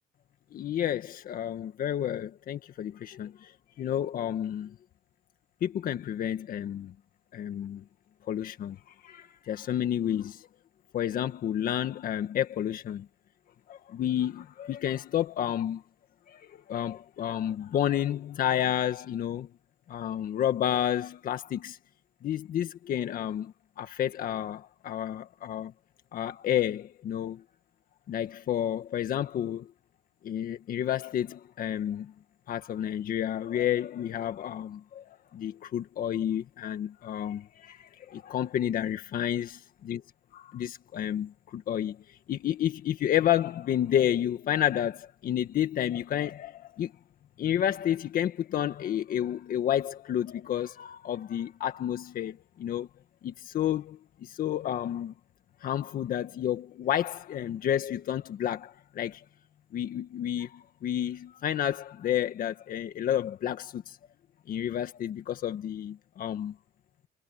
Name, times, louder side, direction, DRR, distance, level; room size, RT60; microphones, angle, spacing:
voice 1, 0.5-3.5 3.8-4.8 5.6-6.9 7.3-7.8 8.3-10.5 10.9-13.1 13.7-15.8 16.3-19.5 19.9-21.8 22.2-25.7 26.1-27.4 28.1-29.7 30.2-32.1 32.5-40.0 40.5-46.9 47.4-52.9 53.2-55.1 55.6-59.2 59.7-64.0 64.5-66.6, left 10 dB, 55° left, 1.7 m, -30 dB
cardioid pair, 110°, 17 cm